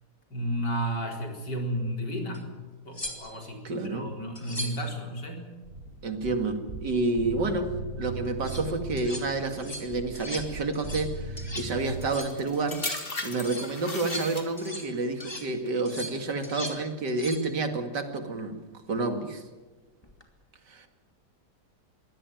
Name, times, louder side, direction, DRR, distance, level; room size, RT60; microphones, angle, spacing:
voice 1, 0.3-2.5 2.8-5.5, equal, 85° left, 2 dB, 4.8 m, -32 dB
sound 1, 2.3-2.4 2.9-3.5 4.4-4.9 8.3-8.6 9.0-9.3 9.5-9.9 10.2-10.5 10.7-11.1 11.4-11.8 12.0-12.4 12.7-13.0 13.4-14.9 15.2-15.5 15.9-16.8 17.1-17.5 20.0-20.2, equal, 15° left, 2.8 m, -39 dB
voice 2, 3.6-4.0 6.0-7.7 8.0-12.8 13.2-18.6 18.9-19.4 20.7-20.9, right 3 dB, 80° right, 6 dB, 2.8 m, -29 dB
sound 2, 5.6-12.1, right 2 dB, 40° right, 3.8 m, -39 dB
sound 3, 11.8-14.9 15.7-16.0, left 3 dB, 30° left, 2.5 m, -37 dB
23.5 x 17.0 x 9.2 m, 1.3 s
omnidirectional pair, 1.8 m